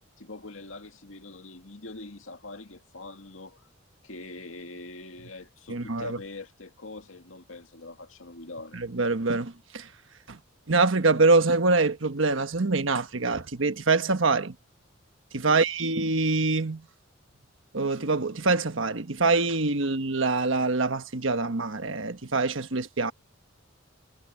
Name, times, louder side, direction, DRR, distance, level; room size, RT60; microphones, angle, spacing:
voice 1, 0.2-3.7 4.0-8.8, left 2 dB, 80° left, 2.2 m, -43 dB
voice 2, 5.7-6.2 8.7-9.9 10.3-10.4 10.7-14.5 15.3-16.9 17.7-23.1, right 3 dB, 70° right, 1.3 m, -25 dB
head